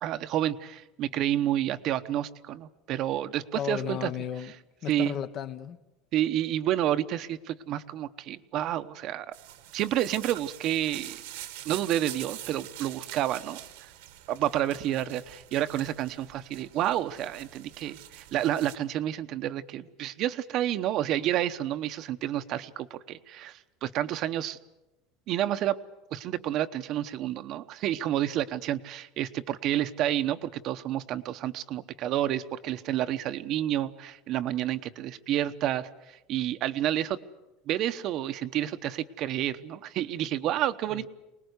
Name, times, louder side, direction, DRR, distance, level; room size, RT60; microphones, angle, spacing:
voice 1, 0.0-4.1 4.9-5.1 6.1-9.3 9.7-11.2 11.6-13.6 14.3-24.6 25.3-25.8 26.1-37.2 37.7-41.1, right 12 dB, 50° right, 1.0 m, -29 dB
voice 2, 3.5-4.5 4.8-5.8 14.9-15.2 40.9-41.1, left 9 dB, 40° left, 1.2 m, -35 dB
sound 1, 9.3-18.8, right 14 dB, 90° right, 1.9 m, -45 dB
24.5 x 19.5 x 8.2 m
supercardioid pair, 145°, 0 cm